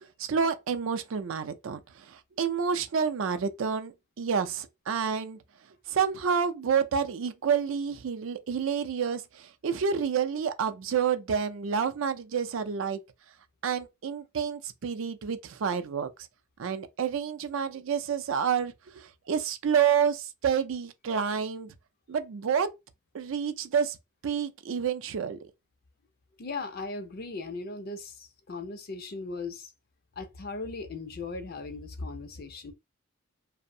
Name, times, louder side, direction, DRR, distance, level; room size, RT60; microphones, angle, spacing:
voice 1, 0.2-5.4 5.9-13.0 13.6-16.1 16.6-21.7 22.1-22.7 23.1-24.0 24.2-25.4, right 7 dB, 65° right, 0.4 m, -29 dB
voice 2, 26.4-29.7 30.2-32.7, left 3 dB, 45° left, 0.4 m, -38 dB
2.6 x 2.0 x 2.5 m
head